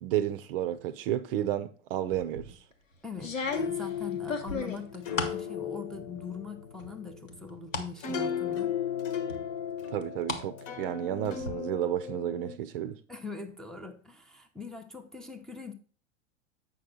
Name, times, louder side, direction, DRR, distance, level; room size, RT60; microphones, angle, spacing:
voice 1, 0.0-2.6 9.9-13.0, right 12 dB, 45° right, 0.6 m, -32 dB
sound 1, 2.1-2.5 3.2-5.4 5.9-6.4 6.8-7.9 8.3-8.4 9.3-10.4 10.8-11.5, left 3 dB, 90° left, 1.2 m, -35 dB
voice 2, 3.0-8.8 13.1-15.7, left 4 dB, ahead, 0.7 m, -42 dB
sound 2, 3.5-12.6, left 8 dB, 40° left, 1.1 m, -36 dB
7.9 x 5.5 x 3.8 m
figure-of-eight pair, 95°, 38 cm